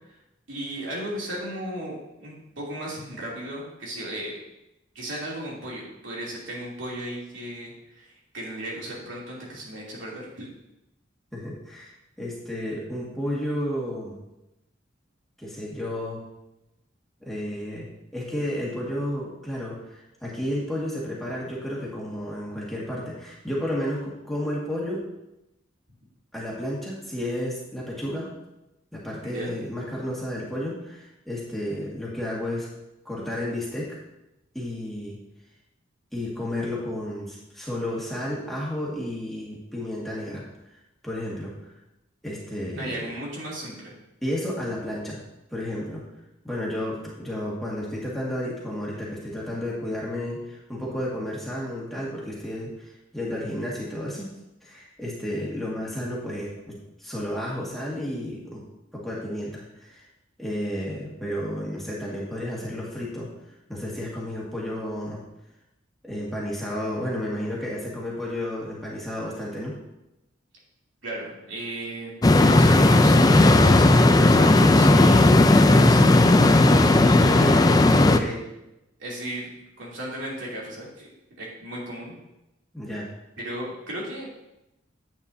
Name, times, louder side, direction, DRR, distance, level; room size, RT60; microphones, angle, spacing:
voice 1, 0.5-4.4 4.9-10.5 29.2-29.5 42.8-44.0 71.0-72.1 72.5-75.3 75.6-77.8 79.0-79.5 79.8-82.1 83.4-84.3, right 1 dB, 80° right, -5 dB, 2.9 m, -35 dB
voice 2, 11.3-14.2 15.4-16.2 17.2-17.9 18.1-25.1 26.3-28.3 28.9-32.7 33.1-34.0 34.5-35.2 36.1-40.5 41.0-41.6 42.2-43.1 44.2-45.2 45.5-46.0 46.4-58.6 58.9-60.0 60.4-63.3 63.7-65.2 66.0-69.8 77.3-78.4 82.7-83.1, left 1 dB, ahead, -6 dB, 1.8 m, -32 dB
sound 1, 72.2-78.2, left 2 dB, 20° left, 0.4 m, -15 dB
9.5 x 8.8 x 2.7 m, 0.91 s
head